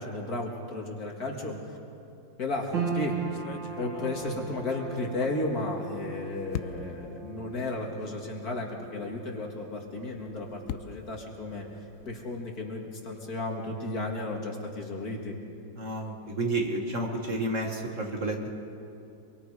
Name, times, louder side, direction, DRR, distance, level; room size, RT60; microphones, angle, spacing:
voice 1, 0.0-1.8 2.4-3.2 3.8-11.7 12.1-15.4, left 2 dB, 50° left, 0 dB, 2.5 m, -34 dB
sound 1, 2.5-2.8 3.3-6.1 6.5-7.1 7.8-7.9 8.2-8.3 10.0-12.3, left 10 dB, 85° left, 0.7 m, -42 dB
sound 2, 2.7-15.1 15.4-16.4 16.8-16.9, right 5 dB, 75° right, 2.5 m, -40 dB
voice 2, 15.8-18.5, right 2 dB, 40° right, 1 dB, 1.9 m, -31 dB
25.0 x 23.0 x 4.9 m, 2.8 s
omnidirectional pair, 2.1 m